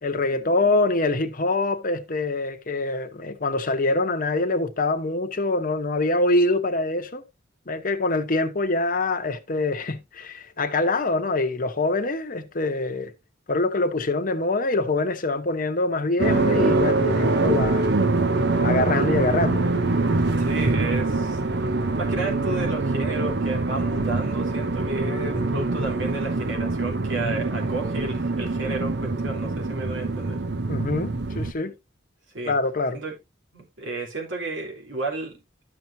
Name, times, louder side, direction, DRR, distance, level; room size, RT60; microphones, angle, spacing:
voice 1, 0.0-7.2 7.7-13.1 13.5-17.9 18.6-19.7 30.7-31.7 32.5-33.0, left 2 dB, 45° left, 1.0 m, -24 dB
sound 1, 16.2-31.5, right 3 dB, 60° right, 0.8 m, -24 dB
voice 2, 20.4-21.6 22.0-30.4 32.3-32.5 32.9-33.1 33.5-35.4, right 2 dB, 80° right, 3.4 m, -32 dB
13.0 x 6.0 x 2.7 m
head